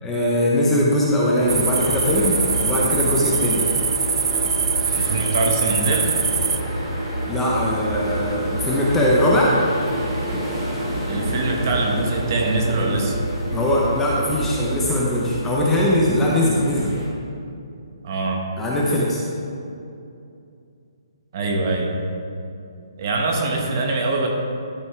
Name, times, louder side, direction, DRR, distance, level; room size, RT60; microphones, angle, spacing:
voice 1, 0.0-3.6 7.3-9.6 13.5-16.9 18.6-19.2, left 1 dB, 10° left, -5 dB, 0.8 m, -20 dB
sound 1, 1.4-17.1, right 1 dB, 20° right, 2.2 m, -28 dB
sound 2, 1.5-6.6, right 5 dB, 70° right, 0.5 m, -23 dB
voice 2, 4.9-6.1 11.1-13.2 18.0-18.4 21.3-21.9 23.0-24.3, right 2 dB, 35° right, 0 dB, 1.3 m, -23 dB
12.0 x 5.3 x 4.5 m, 2.6 s
hypercardioid pair, 165°, 3 cm